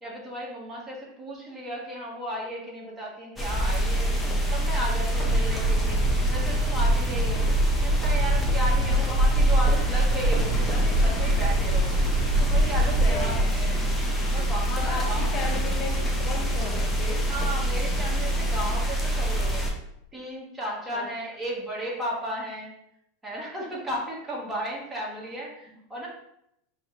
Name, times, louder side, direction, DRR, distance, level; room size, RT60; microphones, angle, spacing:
voice 1, 0.0-4.1 4.5-6.0 6.3-7.5 7.8-11.9 12.4-13.8 14.3-15.5 17.3-19.7 20.1-22.7 23.2-26.1, right 1 dB, 15° right, -4 dB, 1.3 m, -34 dB
sound 1, 3.4-19.7, right 1 dB, 10° left, 0.7 m, -26 dB
sound 2, 5.1-13.4, right 1 dB, 45° right, 0.7 m, -26 dB
sound 3, 10.3-18.8, left 3 dB, 85° left, 0.7 m, -41 dB
voice 2, 13.0-13.6 14.8-17.3 20.9-21.1 25.7-25.8, left 4 dB, 40° left, 1 dB, 0.8 m, -36 dB
5.4 x 2.2 x 3.0 m, 0.77 s
supercardioid pair, 130°, 0 cm